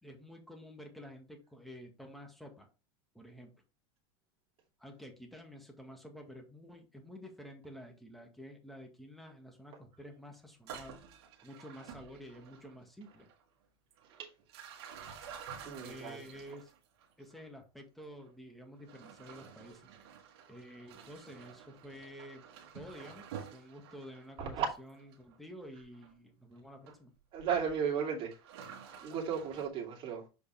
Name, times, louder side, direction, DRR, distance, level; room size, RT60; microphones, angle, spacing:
voice 1, 0.0-2.7 3.1-3.5 4.8-11.0 11.4-13.3 15.8-16.7 17.2-19.8 20.5-22.4 22.7-23.3 23.5-27.1, equal, ahead, 1.8 m, -50 dB
sound 1, 10.5-12.8 13.0-13.4 13.9-17.5 18.1-18.3 18.8-25.4 25.9-26.1 26.9-27.0 27.5-27.8 28.3-29.7, right 7 dB, 75° right, 1.7 m, -51 dB
voice 2, 15.6-16.2 24.5-24.7 27.3-28.3 29.0-30.2, right 7 dB, 40° right, 2.5 m, -34 dB
6.7 x 5.0 x 3.4 m
supercardioid pair, 125°, 14 cm